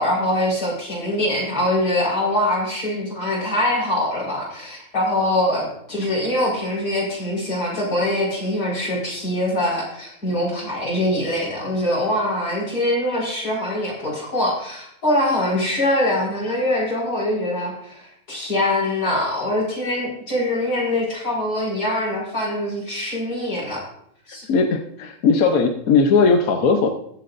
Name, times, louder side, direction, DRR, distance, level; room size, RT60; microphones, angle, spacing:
voice 1, 0.0-23.8 24.3-24.5, left 1 dB, 90° left, -5 dB, 5.1 m, -23 dB
voice 2, 24.5-26.9, left 4 dB, 70° left, 4 dB, 1.3 m, -18 dB
21.5 x 7.6 x 2.6 m, 0.72 s
omnidirectional pair, 1.6 m